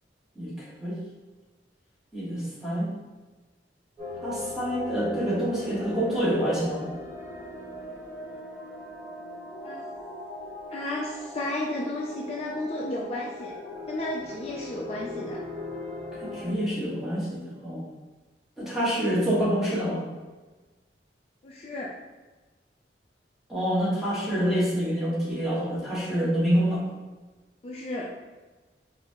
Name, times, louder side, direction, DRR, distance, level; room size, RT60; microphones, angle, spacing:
voice 1, 0.3-1.0 2.1-2.9 4.2-6.9 16.2-17.9 18.6-20.0 23.5-26.8, equal, ahead, -9 dB, 1.3 m, -27 dB
sound 1, 4.0-16.5, left 2 dB, 25° right, 1.1 m, -39 dB
voice 2, 10.7-13.5 13.9-15.4 21.4-21.9 27.6-28.1, left 1 dB, 35° left, -4 dB, 0.4 m, -33 dB
4.1 x 2.7 x 2.9 m, 1.2 s
head